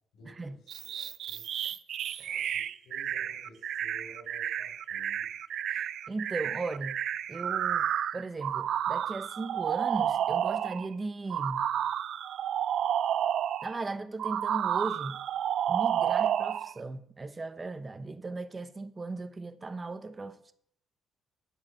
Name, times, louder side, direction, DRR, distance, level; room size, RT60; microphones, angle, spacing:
voice 1, 0.1-1.5 2.2-5.4, equal, 80° left, 4.6 m, -54 dB
sound 1, 0.7-10.9 11.3-13.8 14.2-16.7, right 10 dB, 70° right, 0.5 m, -31 dB
voice 2, 5.7-7.0 7.3-11.7 13.6-15.2 15.7-20.5, right 3 dB, 25° right, 0.9 m, -37 dB
13.5 x 4.8 x 8.6 m
cardioid pair, 90°, 0 cm